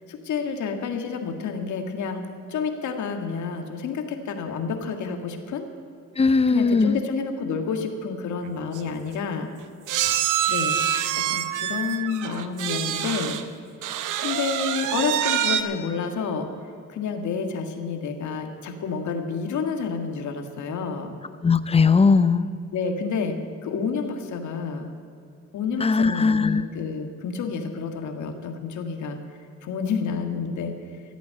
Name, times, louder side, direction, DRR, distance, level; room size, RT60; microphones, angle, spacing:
voice 1, 0.1-2.2 2.5-5.7 6.5-9.5 10.5-10.8 11.3-13.4 14.2-16.5 16.9-21.2 22.7-24.9 25.5-29.2 29.6-30.7, left 5 dB, 70° left, 5 dB, 1.9 m, -29 dB
voice 2, 6.2-7.0 21.4-22.5 25.8-26.6, left 4 dB, 20° left, 13 dB, 0.7 m, -19 dB
sound 1, 8.4-8.5 8.7-8.9 9.9-13.5 13.8-15.6, right 10 dB, 85° right, 0.9 m, -26 dB
15.0 x 8.5 x 8.8 m, 2.5 s
cardioid pair, 90°, 30 cm